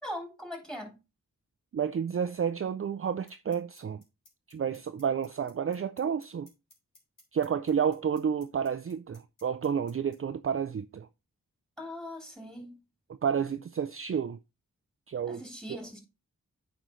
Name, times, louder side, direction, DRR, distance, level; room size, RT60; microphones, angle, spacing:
voice 1, 0.0-1.0 11.8-12.8 15.3-16.0, left 1 dB, ahead, 3.2 m, -40 dB
voice 2, 1.7-4.0 4.5-6.5 7.3-11.1 13.2-14.4 15.1-15.4 15.7-15.8, right 7 dB, 45° right, 0.4 m, -30 dB
sound 1, 3.3-10.2, left 1 dB, 75° left, 3.8 m, -58 dB
9.0 x 5.0 x 3.1 m
wide cardioid pair, 55°, 33 cm